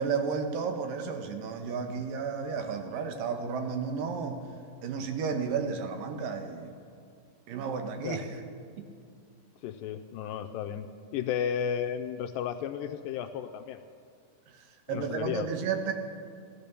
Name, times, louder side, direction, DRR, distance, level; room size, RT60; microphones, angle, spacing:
voice 1, 0.0-4.4 4.8-6.7 7.5-8.3 8.8-8.9 14.5-15.9, right 5 dB, 75° right, 6 dB, 2.6 m, -32 dB
voice 2, 9.6-13.8 14.9-15.5, left 8 dB, 80° left, 7 dB, 2.0 m, -33 dB
15.5 x 12.5 x 6.8 m, 2.2 s
omnidirectional pair, 4.3 m